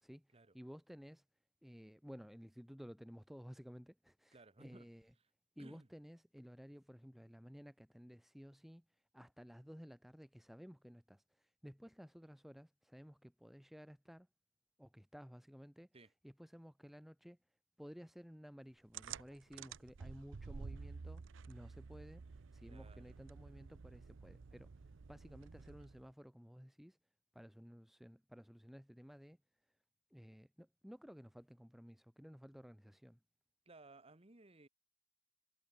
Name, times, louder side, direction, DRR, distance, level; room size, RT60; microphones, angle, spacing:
voice 1, 0.0-1.2 1.6-5.1 5.6-14.3 14.8-15.9 16.2-17.4 17.8-24.7 25.1-27.0 27.3-29.4 30.1-33.2, equal, ahead, 0.8 m, -55 dB
voice 2, 4.3-4.9 5.6-5.9 15.9-16.1 22.7-23.1 33.6-34.7, right 2 dB, 30° right, 1.4 m, -59 dB
sound 1, 18.9-26.1, right 5 dB, 65° right, 0.6 m, -51 dB
head